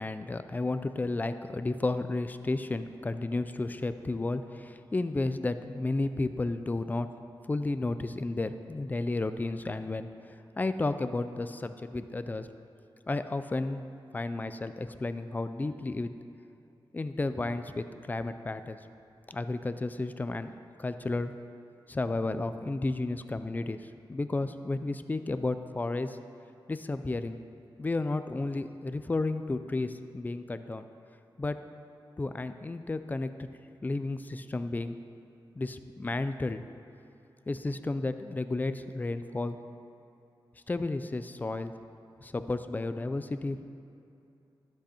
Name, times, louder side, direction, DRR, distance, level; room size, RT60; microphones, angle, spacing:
voice 1, 0.0-7.1 7.5-12.5 13.1-13.8 14.1-16.1 16.9-18.8 19.3-20.5 20.8-21.3 21.9-26.2 26.7-27.4 27.8-30.9 31.4-31.6 32.2-33.5 33.8-35.0 35.6-36.6 37.5-39.6 40.7-41.7 42.2-43.7, left 2 dB, 20° left, 10 dB, 0.4 m, -32 dB
13.5 x 7.7 x 4.3 m, 2.8 s
wide cardioid pair, 170°, 9 cm